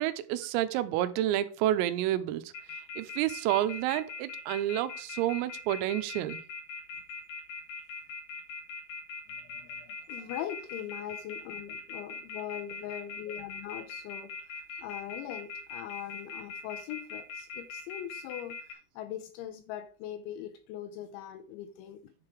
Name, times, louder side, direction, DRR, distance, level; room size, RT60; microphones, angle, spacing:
voice 1, 0.0-2.5 3.0-6.4, right 13 dB, 90° right, 3.4 m, -29 dB
sound 1, 2.5-18.7, left 4 dB, 55° left, 2.2 m, -41 dB
voice 2, 9.4-22.1, left 11 dB, 80° left, 2.8 m, -41 dB
10.5 x 4.8 x 4.7 m
omnidirectional pair, 5.9 m